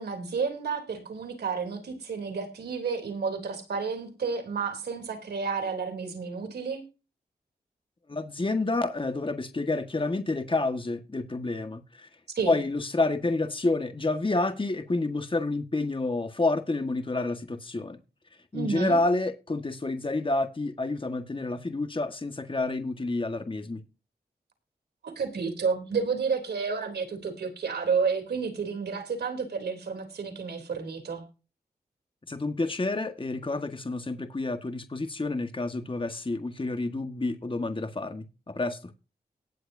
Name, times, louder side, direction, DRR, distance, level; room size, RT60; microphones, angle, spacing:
voice 1, 0.0-6.8 12.3-12.6 18.5-19.0 25.0-31.2, right 5 dB, 85° right, 3.4 m, -31 dB
voice 2, 8.1-12.1 12.4-18.0 18.5-23.8 32.3-38.8, left 2 dB, 30° left, 1.6 m, -29 dB
19.0 x 7.9 x 2.7 m
cardioid pair, 45°, 16 cm